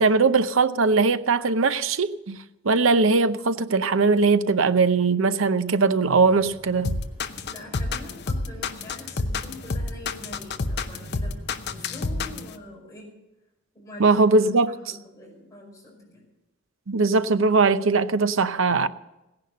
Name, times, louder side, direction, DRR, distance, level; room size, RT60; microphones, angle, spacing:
voice 1, 0.0-2.4 2.6-7.0 14.0-14.7 16.9-18.9, right 4 dB, 70° right, 0.7 m, -20 dB
sound 1, 6.2-12.5, equal, 5° right, 4.5 m, -46 dB
sound 2, 6.8-12.5, left 3 dB, 55° left, 0.8 m, -28 dB
voice 2, 7.5-11.3 11.6-13.1 13.7-16.3, left 1 dB, 15° left, 5.1 m, -44 dB
16.5 x 10.5 x 6.6 m
head